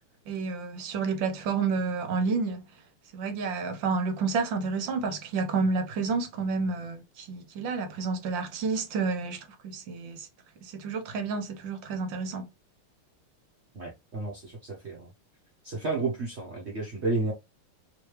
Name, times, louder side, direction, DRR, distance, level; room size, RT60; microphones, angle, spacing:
voice 1, 0.3-2.7 3.1-10.3 10.6-12.5, right 4 dB, 70° right, 1.4 m, -30 dB
voice 2, 13.7-15.1 15.6-17.3, right 3 dB, 50° right, 0.8 m, -31 dB
3.3 x 3.2 x 3.0 m
omnidirectional pair, 2.3 m